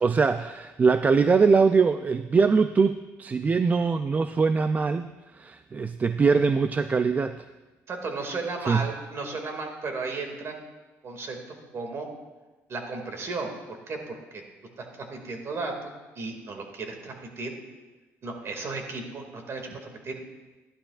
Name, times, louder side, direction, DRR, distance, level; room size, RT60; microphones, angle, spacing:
voice 1, 0.0-5.1 5.3-7.4 8.7-8.8, right 5 dB, 25° right, 10 dB, 0.3 m, -22 dB
voice 2, 7.9-10.6 11.0-11.4 11.7-12.1 12.7-14.4 14.8-17.5 18.2-20.2, right 3 dB, 45° right, 3 dB, 2.2 m, -34 dB
13.5 x 11.5 x 2.4 m, 1.2 s
cardioid pair, 90°, 6 cm